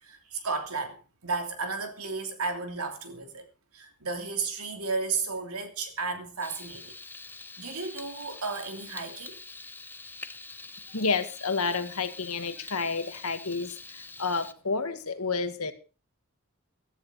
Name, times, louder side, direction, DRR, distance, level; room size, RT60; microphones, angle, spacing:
voice 1, 0.0-3.4 3.7-6.9 7.6-9.4, right 4 dB, 75° right, 3.1 m, -33 dB
Frying (food), 6.4-14.5, left 3 dB, 10° left, 0.6 m, -45 dB
voice 2, 10.9-15.7, left 4 dB, 80° left, 1.9 m, -30 dB
15.0 x 13.5 x 4.4 m
head